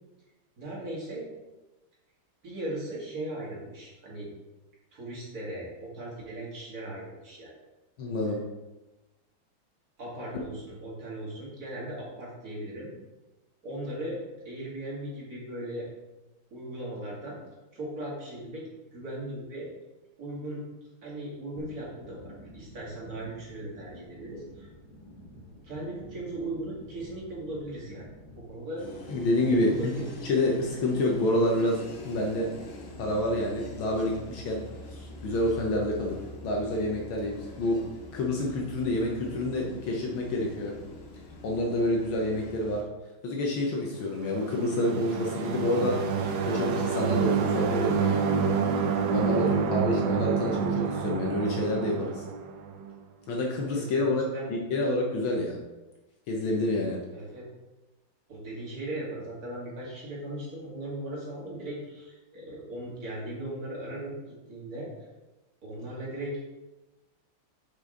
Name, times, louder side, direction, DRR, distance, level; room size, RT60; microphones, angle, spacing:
voice 1, 0.6-1.3 2.4-4.3 4.9-7.5 10.0-12.9 13.6-14.2 14.4-15.9 16.5-17.4 17.7-18.6 18.9-19.7 20.2-20.6 21.0-24.7 25.6-28.1 28.4-28.9 29.5-30.1 49.4-49.7 53.7-54.1 54.3-54.5 57.1-57.4 58.3-64.1 64.5-64.9 65.6-66.4, right 1 dB, 45° right, -5 dB, 2.6 m, -38 dB
voice 2, 8.0-8.4 29.1-29.9 30.2-31.8 32.1-32.5 33.0-34.6 34.9-37.8 38.1-40.7 41.4-42.8 43.2-48.2 49.1-52.2 53.3-54.2 54.5-55.6 56.3-57.0, left 1 dB, 75° left, -1 dB, 1.7 m, -28 dB
sound 1, 21.6-28.5, equal, 25° left, 1.5 m, -49 dB
sound 2, 28.8-42.8, left 1 dB, 45° left, 0.8 m, -44 dB
sound 3, 44.2-52.9, right 6 dB, 70° right, 1.0 m, -28 dB
6.3 x 5.9 x 3.8 m, 1.1 s
omnidirectional pair, 2.2 m